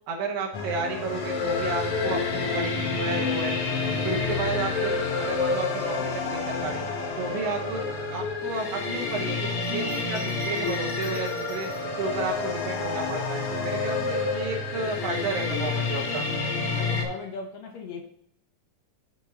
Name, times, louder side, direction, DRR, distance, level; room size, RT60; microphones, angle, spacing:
voice 1, 0.1-3.6 4.0-6.8 7.2-11.7 12.0-16.3, right 3 dB, 75° right, -1 dB, 2.6 m, -32 dB
sound 1, 0.5-17.1, left 4 dB, 85° left, 1.3 m, -29 dB
Bell, 9.5-12.0 12.7-13.6, right 1 dB, 40° left, 0.5 m, -50 dB
voice 2, 16.8-18.0, left 3 dB, 70° left, 2 dB, 1.7 m, -37 dB
12.0 x 4.4 x 2.8 m, 0.72 s
omnidirectional pair, 4.1 m